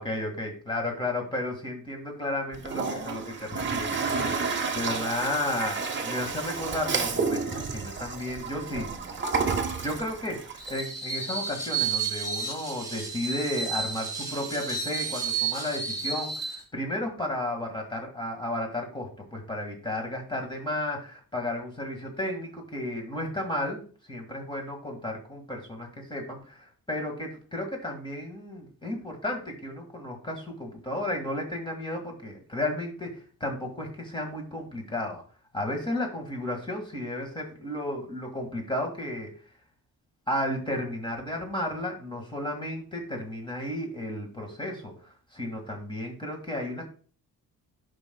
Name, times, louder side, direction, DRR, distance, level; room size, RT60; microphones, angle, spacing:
voice 1, 0.0-8.9 9.8-10.4 10.7-23.8 24.1-35.2 35.5-39.3 40.3-46.9, left 1 dB, 15° left, 2 dB, 1.9 m, -33 dB
Toilet flush, 2.5-10.7, right 4 dB, 30° right, 0.9 m, -31 dB
Screech, 10.6-16.6, right 5 dB, 10° right, 1.1 m, -32 dB
11.5 x 5.4 x 2.3 m, 0.41 s
wide cardioid pair, 145°, 36 cm